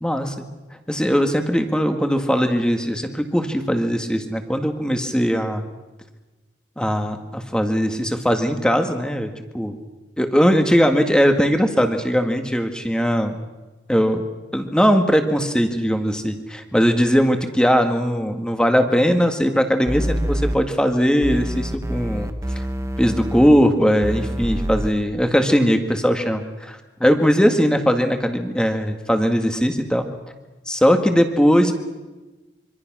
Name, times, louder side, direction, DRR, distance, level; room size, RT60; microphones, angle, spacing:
voice 1, 0.0-0.4 0.9-5.6 6.8-9.8 10.2-13.4 13.9-14.2 14.5-22.3 23.0-30.1 30.7-31.7, equal, 5° left, 6 dB, 1.9 m, -19 dB
sound 1, 19.9-20.5 21.2-23.5 24.0-24.9, equal, 15° right, 1.1 m, -26 dB
25.5 x 25.5 x 6.2 m, 1.2 s
head